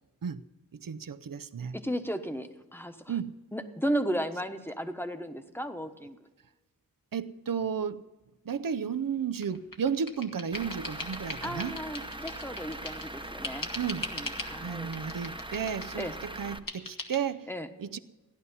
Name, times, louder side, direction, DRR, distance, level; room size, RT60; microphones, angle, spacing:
voice 1, 0.7-1.8 3.1-3.3 7.1-8.0 8.4-11.8 13.8-14.1 14.6-17.5 17.8-18.0, right 7 dB, 70° right, 0.6 m, -33 dB
voice 2, 1.7-3.0 3.5-6.2 11.4-13.7 14.0-14.9 16.0-16.1 17.5-17.7, equal, 5° left, 1.2 m, -34 dB
sound 1, 9.4-13.1 13.4-14.5 14.9-16.1 16.7-17.2, left 2 dB, 70° left, 1.7 m, -40 dB
Truck / Idling, 10.5-16.6, right 1 dB, 15° right, 0.9 m, -41 dB
15.5 x 11.0 x 5.6 m
wide cardioid pair, 50°, 34 cm